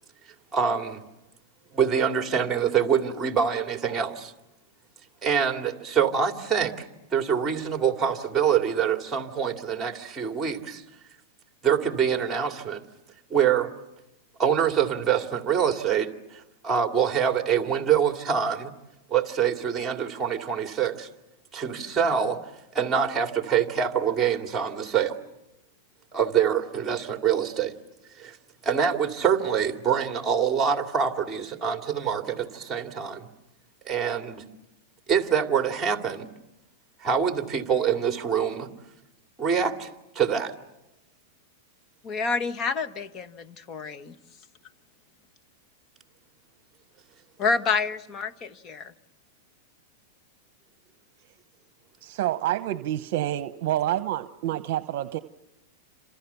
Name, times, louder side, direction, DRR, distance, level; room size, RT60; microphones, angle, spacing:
voice 1, 0.5-1.0 1.7-4.3 5.2-10.8 11.6-12.8 13.3-13.7 14.4-18.7 19.1-21.1 21.5-22.4 22.7-25.2 26.1-27.7 28.2-28.4 28.6-33.3 33.8-34.4 35.1-36.3 37.0-38.7 39.4-40.5, right 7 dB, 15° right, 4 dB, 2.6 m, -25 dB
voice 2, 42.0-44.1 47.4-48.9, left 4 dB, 30° left, 10 dB, 1.4 m, -28 dB
voice 3, 52.0-55.2, right 13 dB, 60° right, 11 dB, 0.9 m, -28 dB
28.5 x 27.0 x 7.0 m, 0.93 s
supercardioid pair, 135°, 0 cm